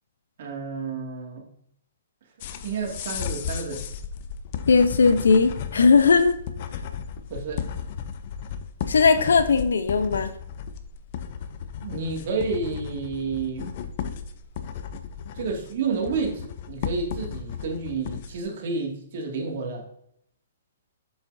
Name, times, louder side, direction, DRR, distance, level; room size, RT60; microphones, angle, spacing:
voice 1, 0.4-1.5 2.6-3.8 7.3-7.6 11.8-13.7 15.3-19.9, right 4 dB, 55° right, 1 dB, 2.2 m, -30 dB
sound 1, 2.4-18.4, left 7 dB, 45° left, 0.7 m, -35 dB
voice 2, 4.7-6.4 8.9-10.3, left 4 dB, 85° left, 10 dB, 0.7 m, -18 dB
7.6 x 7.1 x 2.7 m, 0.70 s
hypercardioid pair, 145°, 0 cm